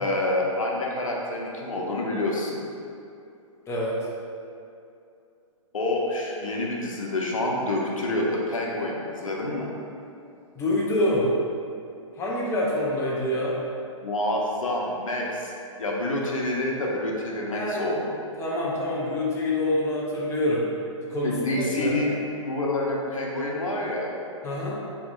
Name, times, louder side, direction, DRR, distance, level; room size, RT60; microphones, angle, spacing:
voice 1, 0.0-2.6 5.7-9.7 14.0-15.5 15.8-18.1 21.2-22.2 22.4-24.1, left 1 dB, 80° left, -2 dB, 0.8 m, -27 dB
voice 2, 3.7-4.0 10.6-11.3 12.2-13.6 17.5-17.9 18.4-20.7 21.1-22.1 24.4-24.8, left 1 dB, 15° left, -5 dB, 0.7 m, -26 dB
6.0 x 2.9 x 2.5 m, 2.6 s
hypercardioid pair, 125°, 17 cm